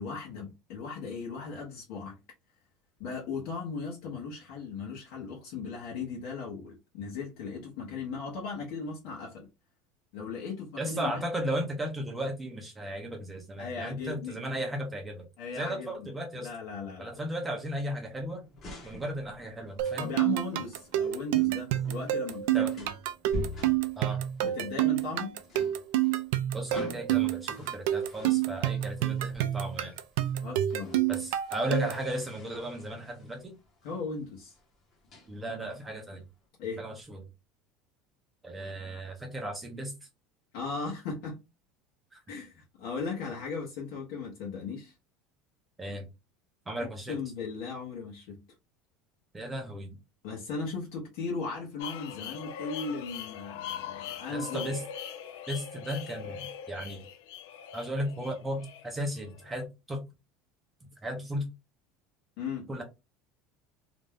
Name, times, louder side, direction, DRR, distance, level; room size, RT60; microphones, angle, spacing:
voice 1, 0.0-2.2 3.0-9.5 10.1-11.2 13.6-14.4 15.4-16.1 16.4-17.2 20.0-22.9 24.4-25.3 30.4-31.1 33.8-34.6 36.6-36.8 40.5-41.4 42.3-44.9 46.8-48.4 50.2-54.8 62.4-62.7, left 4 dB, 60° left, 0.8 m, -37 dB
voice 2, 10.8-15.3 15.6-16.5 17.0-18.4 18.8-20.1 22.5-22.7 24.0-24.2 26.5-29.9 31.1-33.6 35.3-36.2 36.8-37.2 38.4-39.9 42.1-42.2 45.8-46.1 46.7-47.2 49.3-50.0 54.3-54.8 55.5-57.0 57.7-60.0 61.0-61.5 62.7-62.8, equal, 10° right, 0.5 m, -35 dB
sound 1, 18.0-36.4, left 2 dB, 30° left, 0.9 m, -47 dB
sound 2, 19.8-32.1, right 13 dB, 75° right, 0.3 m, -28 dB
sound 3, 51.8-59.7, left 9 dB, 80° left, 0.4 m, -41 dB
2.5 x 2.2 x 3.2 m
cardioid pair, 175°, 0 cm